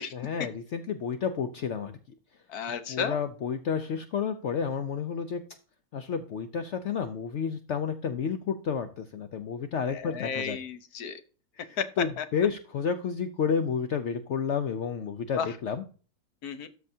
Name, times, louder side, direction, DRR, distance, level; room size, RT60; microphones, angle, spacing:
voice 1, 0.1-2.0 2.9-5.4 5.9-10.6 11.7-15.8, left 6 dB, 85° left, 9 dB, 0.6 m, -31 dB
voice 2, 2.5-3.2 9.9-11.2 11.8-12.2 15.3-15.6 16.4-16.7, left 6 dB, 60° left, 11 dB, 1.2 m, -33 dB
13.0 x 5.8 x 2.7 m, 0.38 s
omnidirectional pair, 2.0 m